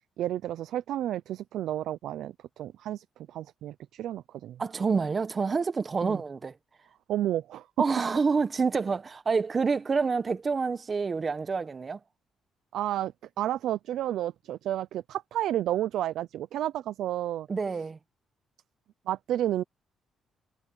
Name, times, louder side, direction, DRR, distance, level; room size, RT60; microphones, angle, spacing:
voice 1, 0.2-4.6 6.0-6.2 7.1-7.7 12.7-17.5 19.1-19.6, right 12 dB, 80° right, 0.6 m, -31 dB
voice 2, 4.6-6.5 7.8-12.0 17.5-18.0, right 4 dB, 35° right, 1.2 m, -27 dB
cardioid pair, 90°, 0 cm